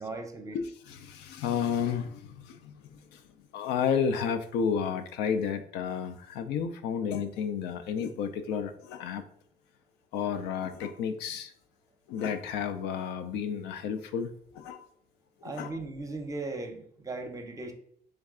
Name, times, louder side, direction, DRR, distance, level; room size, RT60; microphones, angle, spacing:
voice 1, 0.0-0.6 15.4-17.7, right 3 dB, 20° right, 0.6 m, -37 dB
voice 2, 0.5-3.2 3.5-9.2 10.1-11.5 12.1-14.9 15.4-15.8, left 7 dB, 85° left, 0.5 m, -32 dB
3.4 x 3.1 x 3.6 m
cardioid pair, 110°, 17 cm